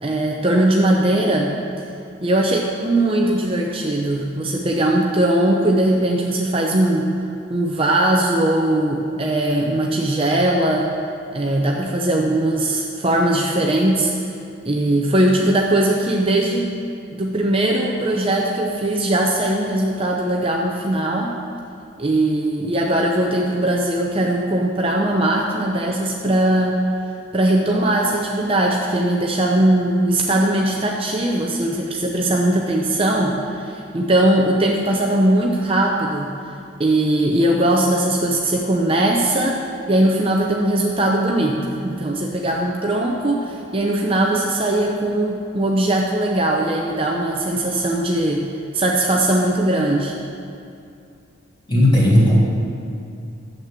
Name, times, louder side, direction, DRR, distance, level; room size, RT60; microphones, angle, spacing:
voice 1, 0.0-1.5 2.2-7.1 7.5-10.9 11.3-14.1 14.6-16.7 17.1-21.4 22.0-26.8 27.3-36.3 36.8-48.5 48.7-50.1, right 1 dB, 25° right, -1 dB, 0.8 m, -20 dB
voice 2, 51.7-52.4, left 1 dB, 20° left, -6 dB, 3.0 m, -14 dB
12.0 x 7.7 x 7.5 m, 2.5 s
head